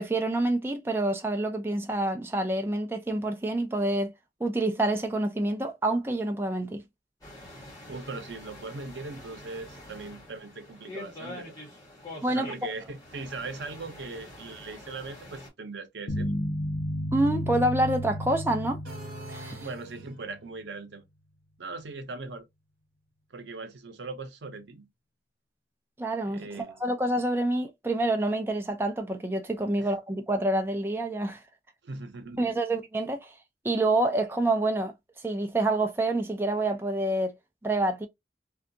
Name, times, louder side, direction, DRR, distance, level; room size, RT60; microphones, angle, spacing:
voice 1, 0.0-4.1 4.4-6.8 12.2-12.5 17.1-18.8 19.3-19.7 26.0-31.4 32.4-33.3 33.6-34.9 35.2-37.3 37.6-38.1, right 2 dB, 15° right, 0.4 m, -27 dB
sound 1, 7.2-15.5, left 1 dB, 20° left, 1.1 m, -45 dB
voice 2, 7.9-11.6 12.3-16.4 19.6-21.0 21.6-22.4 23.3-24.9 26.2-26.8 29.8-29.9 31.8-32.5, right 3 dB, 90° right, 0.6 m, -40 dB
sound 2, 16.1-20.3, equal, 80° left, 0.7 m, -33 dB
sound 3, 18.8-20.4, right 1 dB, 60° right, 1.2 m, -45 dB
2.6 x 2.3 x 2.5 m
head